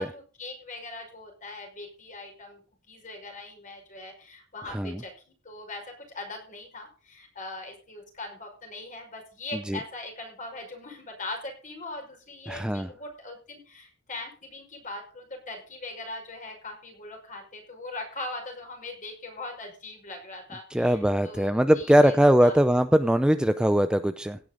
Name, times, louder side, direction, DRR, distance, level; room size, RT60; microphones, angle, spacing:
voice 1, 0.0-2.6 2.9-22.1 22.4-22.6, left 2 dB, 40° left, 3 dB, 5.6 m, -40 dB
voice 2, 4.7-5.0 9.7-9.8 12.5-12.9 20.7-24.4, equal, 5° right, 10 dB, 0.5 m, -21 dB
16.5 x 9.5 x 3.9 m, 0.37 s
head